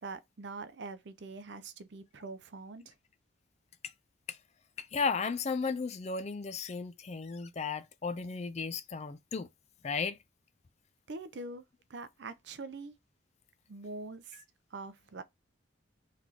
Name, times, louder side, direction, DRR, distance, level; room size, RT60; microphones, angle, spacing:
voice 1, 0.0-2.9 11.1-11.6 11.9-12.9 13.7-14.4 14.7-15.2, right 3 dB, 60° right, 0.5 m, -43 dB
voice 2, 4.8-9.5 9.8-10.2, left 5 dB, 35° left, 0.4 m, -34 dB
4.0 x 3.2 x 2.8 m
head